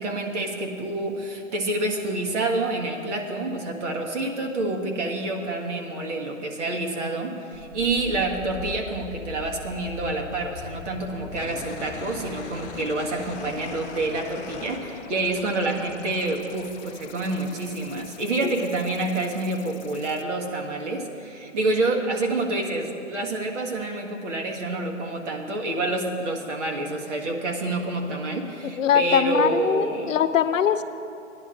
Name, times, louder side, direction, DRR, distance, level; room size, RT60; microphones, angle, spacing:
voice 1, 0.0-30.1, right 2 dB, 65° right, 1 dB, 1.8 m, -28 dB
sound 1, 7.5-20.2, left 7 dB, 40° left, 0.4 m, -42 dB
sound 2, 11.3-15.4 15.6-16.7, left 4 dB, 20° left, 1.3 m, -41 dB
voice 2, 28.8-30.8, left 8 dB, 80° left, 11 dB, 0.7 m, -22 dB
15.5 x 10.5 x 3.8 m, 2.7 s
hypercardioid pair, 145°, 38 cm